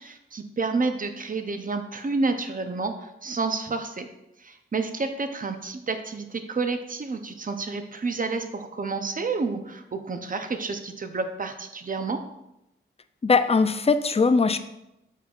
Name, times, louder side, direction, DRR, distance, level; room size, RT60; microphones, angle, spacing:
voice 1, 0.0-4.1 4.4-12.2, right 3 dB, 40° right, 7 dB, 0.7 m, -30 dB
voice 2, 13.2-14.6, left 4 dB, 30° left, 10 dB, 0.4 m, -20 dB
7.3 x 5.3 x 2.4 m, 0.87 s
cardioid pair, 55°, 21 cm